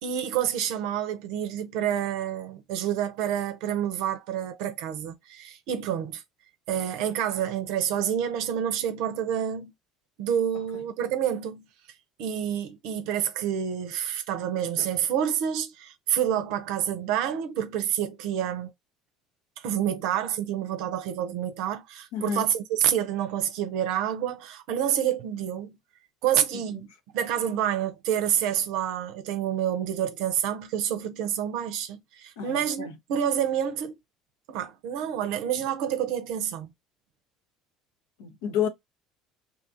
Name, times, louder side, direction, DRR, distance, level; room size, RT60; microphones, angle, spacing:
voice 1, 0.0-6.2 6.7-9.7 10.2-11.6 12.2-18.7 19.6-25.7 26.2-26.9 27.1-33.9 34.5-36.7, right 9 dB, 70° right, 0.5 m, -28 dB
voice 2, 22.1-22.4 26.3-26.4 32.4-33.0 38.2-38.7, left 8 dB, 75° left, 0.7 m, -30 dB
2.7 x 2.4 x 2.6 m
hypercardioid pair, 65°, 0 cm